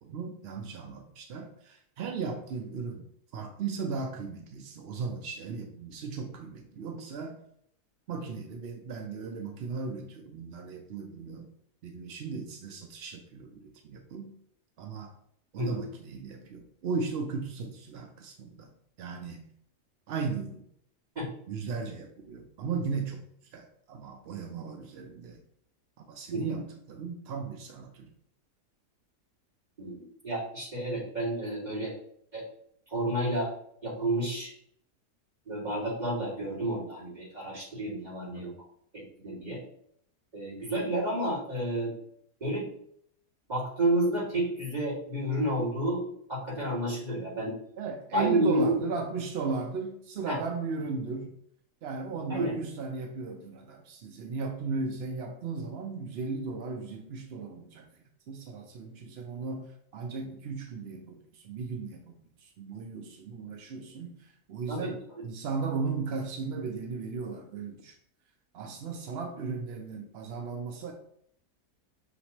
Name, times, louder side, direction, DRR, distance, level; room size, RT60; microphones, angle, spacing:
voice 1, 0.0-3.0 3.3-7.4 8.1-11.5 11.8-14.3 14.8-15.1 15.5-18.7 19.0-19.5 20.1-20.6 21.5-23.2 23.5-25.4 26.1-28.1 38.4-38.5 47.8-51.3 51.8-57.9 58.3-68.0 68.5-70.9, right 4 dB, 70° right, 3 dB, 0.6 m, -36 dB
voice 2, 29.8-31.9 32.3-32.4 32.9-33.5 33.8-34.5 35.5-38.5 38.9-39.6 40.3-41.9 42.4-42.7 43.5-46.0 46.3-47.6 48.1-48.8 50.3-50.4 52.3-52.6 64.7-64.9, right 1 dB, 25° right, -7 dB, 2.2 m, -30 dB
5.9 x 2.9 x 2.9 m, 0.67 s
omnidirectional pair, 1.7 m